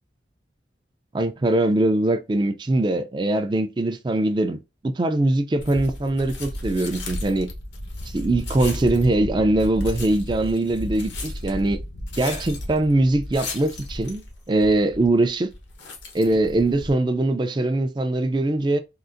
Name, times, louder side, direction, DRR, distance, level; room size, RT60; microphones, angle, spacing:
voice 1, 1.1-7.5 8.1-11.8 12.2-14.2 14.5-15.5 16.1-18.8, right 2 dB, 25° right, 0.3 m, -22 dB
sound 1, 5.6-17.0, left 1 dB, 75° left, 0.9 m, -34 dB
3.8 x 2.4 x 2.5 m
head